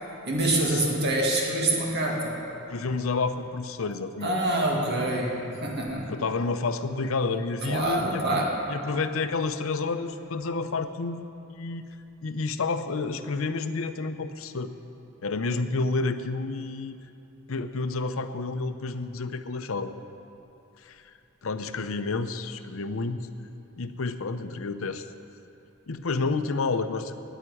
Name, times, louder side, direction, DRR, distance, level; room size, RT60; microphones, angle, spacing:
voice 1, 0.3-2.4 3.8-3.9 4.2-5.3 5.6-6.1 7.6-8.6, right 1 dB, 55° right, -1 dB, 2.1 m, -26 dB
voice 2, 2.7-4.4 6.1-11.2 11.5-11.9 12.2-14.7 15.2-17.0 17.5-20.0 20.8-21.0 21.4-23.2 23.8-25.1 25.9-27.1, left 3 dB, 70° left, 10 dB, 0.6 m, -30 dB
9.2 x 9.0 x 9.9 m, 2.9 s
head